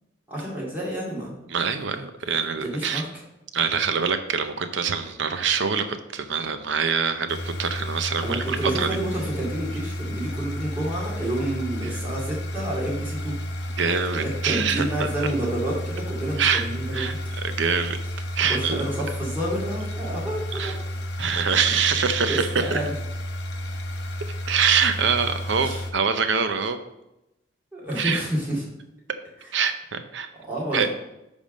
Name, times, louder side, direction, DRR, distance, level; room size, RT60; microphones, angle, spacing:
voice 1, 0.3-1.3 2.6-3.1 8.2-13.3 14.1-17.2 18.5-20.8 22.3-22.9 25.6-25.8 27.7-28.6 30.5-30.9, right 1 dB, 10° right, -6 dB, 2.3 m, -29 dB
voice 2, 1.5-3.0 3.5-9.0 11.8-12.0 13.8-15.1 16.4-16.7 16.9-17.1 17.4-18.0 18.4-18.8 20.5-20.8 21.2-22.8 24.5-26.8 28.0-28.2 29.5-30.3 30.7-30.9, right 6 dB, 65° right, 9 dB, 0.6 m, -24 dB
sound 1, 7.3-25.9, equal, 55° left, 0.8 m, -32 dB
10.0 x 3.6 x 5.2 m, 0.90 s
head